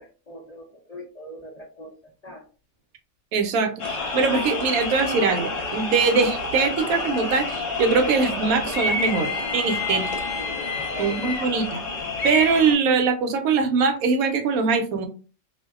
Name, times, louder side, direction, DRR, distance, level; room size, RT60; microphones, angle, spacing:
voice 1, 0.0-1.9 2.2-2.4 10.4-11.6, left 1 dB, 80° left, -3 dB, 0.3 m, -41 dB
voice 2, 3.3-10.1 11.0-11.8 12.2-15.1, right 4 dB, 75° right, 6 dB, 1.0 m, -22 dB
sound 1, 3.8-12.7, left 3 dB, 65° left, 1.0 m, -28 dB
2.6 x 2.1 x 2.3 m, 0.36 s
omnidirectional pair, 1.6 m